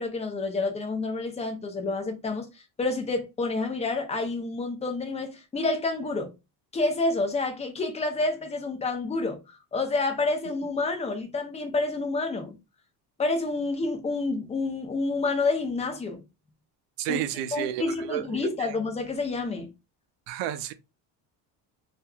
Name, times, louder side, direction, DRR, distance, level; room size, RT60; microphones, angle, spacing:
voice 1, 0.0-6.3 6.7-12.6 13.2-16.2 17.1-17.2 17.5-19.7, left 3 dB, 15° left, 0.6 m, -29 dB
voice 2, 17.0-18.7 20.3-20.7, right 12 dB, 80° right, 0.5 m, -32 dB
2.7 x 2.5 x 2.3 m
cardioid pair, 110°, 44 cm